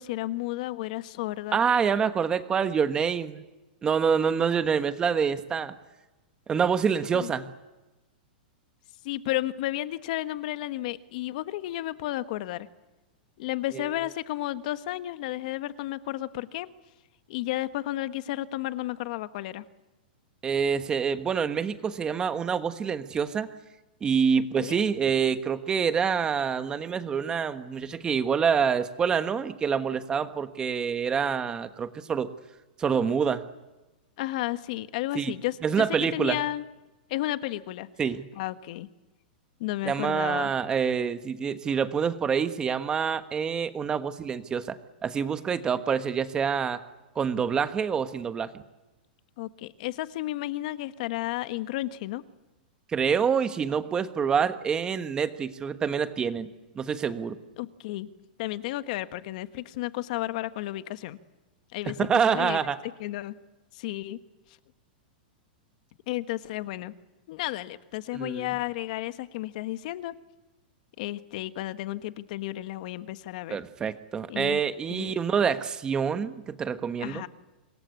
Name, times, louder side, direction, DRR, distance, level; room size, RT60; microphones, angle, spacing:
voice 1, 0.0-1.6 7.1-7.3 9.0-12.7 13.4-16.7 17.3-19.6 24.6-24.8 34.2-35.6 36.1-36.6 37.1-37.9 38.4-38.9 39.6-40.5 49.4-52.2 57.6-58.1 58.4-61.2 61.7-62.0 62.3-63.3 63.7-64.2 66.1-66.9 67.3-70.1 71.0-73.6 74.3-74.6 74.9-75.1 77.0-77.3, left 16 dB, 50° left, 12 dB, 1.3 m, -32 dB
voice 2, 1.5-3.4 3.8-5.7 6.5-7.5 13.7-13.9 20.4-23.5 24.0-32.3 32.8-33.5 35.1-35.3 35.6-36.4 38.0-38.3 39.8-46.8 47.1-48.5 52.9-56.5 56.7-57.4 61.9-62.8 68.1-68.5 73.5-77.2, right 6 dB, 15° right, 10 dB, 1.3 m, -26 dB
26.5 x 21.5 x 8.5 m, 1.1 s
supercardioid pair, 160°, 5 cm